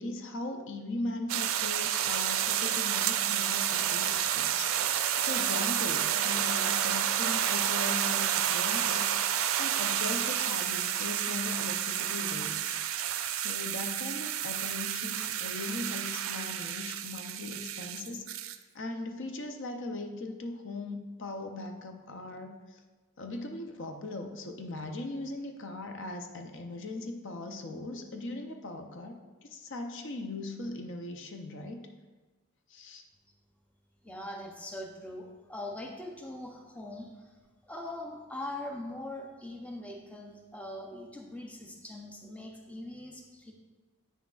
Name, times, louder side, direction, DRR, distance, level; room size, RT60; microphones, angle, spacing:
voice 1, 0.0-4.7 5.2-9.1 9.6-12.8 13.3-18.2 18.7-22.8 23.2-31.9 32.7-33.0, left 2 dB, 55° left, 4 dB, 0.6 m, -39 dB
sound 1, 1.3-18.6, right 10 dB, 65° right, 0.4 m, -30 dB
voice 2, 34.0-37.3 37.6-43.5, left 1 dB, 5° left, 0 dB, 0.6 m, -42 dB
8.2 x 6.1 x 2.4 m, 1.3 s
head